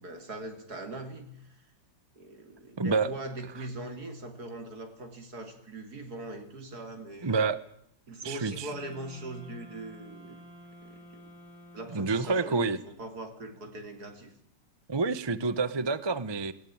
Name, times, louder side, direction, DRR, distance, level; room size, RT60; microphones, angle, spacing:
voice 1, 0.0-1.7 2.2-7.4 8.1-10.4 10.8-11.3 11.7-14.3, right 2 dB, 60° right, 6 dB, 3.5 m, -41 dB
voice 2, 2.8-3.1 7.2-7.6 8.2-8.7 11.9-12.8 14.9-16.5, right 4 dB, 25° right, 14 dB, 0.6 m, -28 dB
sound 1, 8.7-12.5, equal, 50° left, 7.5 m, -51 dB
20.0 x 18.0 x 8.8 m, 0.71 s
omnidirectional pair, 1.9 m